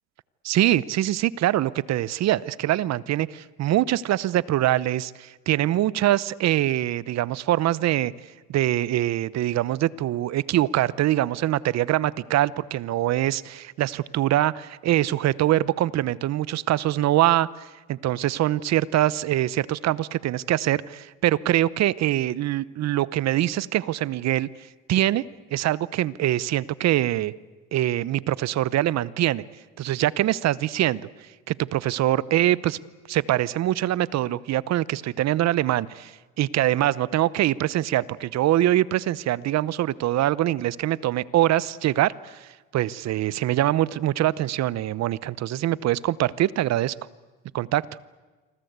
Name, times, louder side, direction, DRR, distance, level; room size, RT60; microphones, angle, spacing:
voice 1, 0.4-8.1 8.5-24.5 24.9-25.2 25.5-27.3 27.7-29.4 29.8-31.1 31.5-32.8 33.1-46.9 47.5-47.9, right 14 dB, 55° right, 20 dB, 0.9 m, -24 dB
27.0 x 24.5 x 8.2 m, 1.3 s
supercardioid pair, 95°, 32 cm